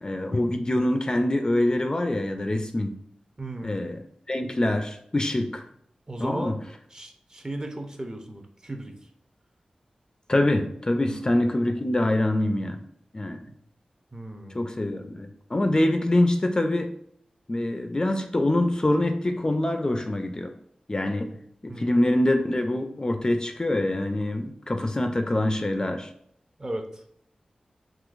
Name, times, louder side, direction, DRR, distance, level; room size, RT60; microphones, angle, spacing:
voice 1, 0.0-3.0 3.6-4.0 4.3-5.6 6.2-6.5 10.3-12.8 13.1-13.4 14.5-16.9 17.5-20.5 20.9-21.3 21.6-26.1, left 1 dB, 30° left, 7 dB, 0.4 m, -25 dB
voice 2, 3.4-3.8 6.1-6.6 6.9-9.1 11.0-11.3 14.1-14.6 21.7-21.9 26.6-27.0, right 1 dB, 30° right, 4 dB, 0.6 m, -36 dB
3.7 x 2.8 x 2.5 m, 0.71 s
cardioid pair, 55°, 2 cm